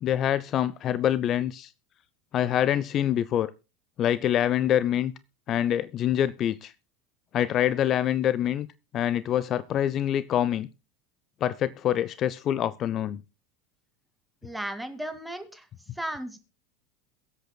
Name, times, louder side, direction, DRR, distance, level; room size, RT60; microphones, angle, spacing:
voice 1, 0.0-1.7 2.3-3.5 4.0-5.1 5.5-6.7 7.3-8.7 8.9-10.7 11.4-13.2, left 11 dB, 45° left, 17 dB, 0.6 m, -25 dB
voice 2, 14.4-15.7 15.9-16.4, right 1 dB, 5° right, 8 dB, 2.2 m, -35 dB
22.5 x 8.2 x 2.2 m, 0.28 s
hypercardioid pair, 85°, 0 cm